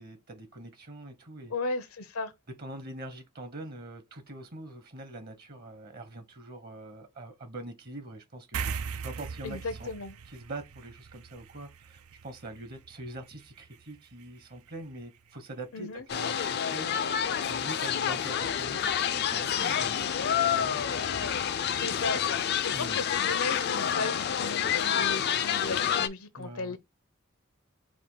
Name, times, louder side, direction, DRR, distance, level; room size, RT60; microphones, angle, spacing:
voice 1, 0.0-1.5 2.6-9.9 10.2-17.2 17.5-21.4 22.0-22.1 22.7-23.0 26.4-26.8, right 2 dB, 45° right, 0.9 m, -44 dB
voice 2, 1.5-2.3 9.4-10.2 15.7-16.0 21.8-22.2 22.6-26.8, left 3 dB, 80° left, 0.8 m, -35 dB
sound 1, 8.5-15.3, right 6 dB, 85° right, 0.5 m, -41 dB
sound 2, 16.1-26.1, left 8 dB, 50° left, 0.4 m, -28 dB
4.8 x 2.4 x 3.8 m
head